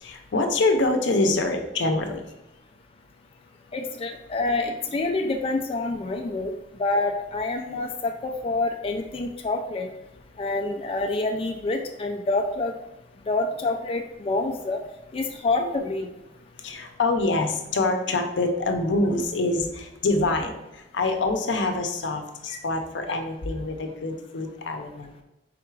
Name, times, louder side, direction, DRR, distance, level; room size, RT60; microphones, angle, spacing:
voice 1, 0.0-2.2 15.8-15.9 16.6-20.6 20.9-25.2, left 2 dB, 85° left, 5 dB, 0.6 m, -25 dB
voice 2, 3.7-6.5 6.8-9.9 10.4-12.7 13.3-14.8 15.1-16.1 22.5-22.6, left 2 dB, 30° left, 3 dB, 0.3 m, -27 dB
3.8 x 2.4 x 4.6 m, 0.97 s
head